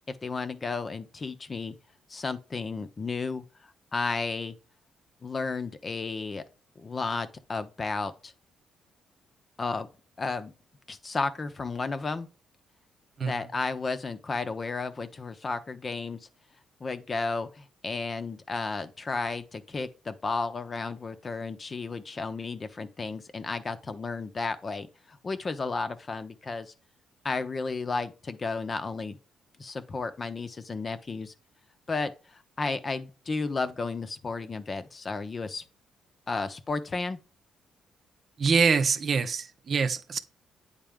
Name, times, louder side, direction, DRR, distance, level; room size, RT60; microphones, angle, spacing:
voice 1, 0.1-1.7 2.1-4.6 5.2-6.4 6.8-8.3 9.6-9.9 10.2-10.5 10.9-12.3 13.2-16.2 16.8-26.7 27.2-29.2 29.6-31.3 31.9-35.6 36.3-37.2, left 4 dB, 35° left, 0.8 m, -33 dB
voice 2, 38.4-40.2, right 5 dB, 50° right, 0.7 m, -25 dB
9.0 x 4.0 x 3.6 m
cardioid pair, 90°, 0 cm